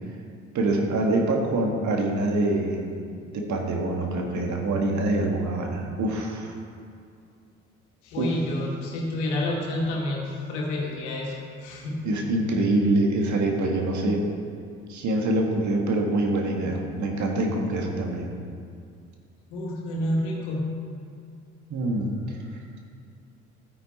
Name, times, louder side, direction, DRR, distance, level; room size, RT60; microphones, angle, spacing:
voice 1, 0.5-2.8 3.3-6.6 8.2-8.3 12.0-14.2 14.9-18.3 21.7-22.4, right 2 dB, 50° right, 1 dB, 2.0 m, -25 dB
voice 2, 8.0-11.3 11.6-12.0 19.5-20.7, left 1 dB, 75° left, -2 dB, 2.2 m, -29 dB
13.0 x 9.5 x 4.3 m, 2.3 s
figure-of-eight pair, 50°, 36 cm